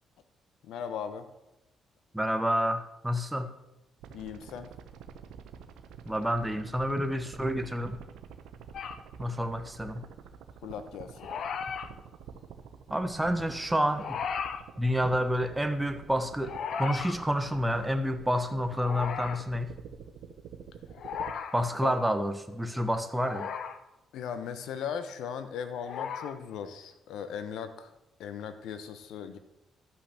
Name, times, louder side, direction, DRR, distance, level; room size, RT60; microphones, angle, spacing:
voice 1, 0.6-1.3 4.1-4.7 10.6-11.3 21.8-22.0 24.1-27.9 28.2-29.4, left 7 dB, 80° left, 10 dB, 1.1 m, -38 dB
voice 2, 2.1-3.5 6.0-8.0 9.2-10.0 12.9-14.2 14.8-19.7 21.5-23.5, equal, 5° right, 8 dB, 1.1 m, -29 dB
sound 1, 4.0-21.3, right 7 dB, 90° right, 0.9 m, -48 dB
sound 2, 8.7-9.0 11.1-11.9 14.0-14.6 16.4-17.2 18.8-19.4 20.9-21.6 23.1-23.8 25.8-26.4, left 7 dB, 65° left, 0.9 m, -36 dB
12.5 x 5.9 x 7.0 m, 0.92 s
cardioid pair, 90°, 0 cm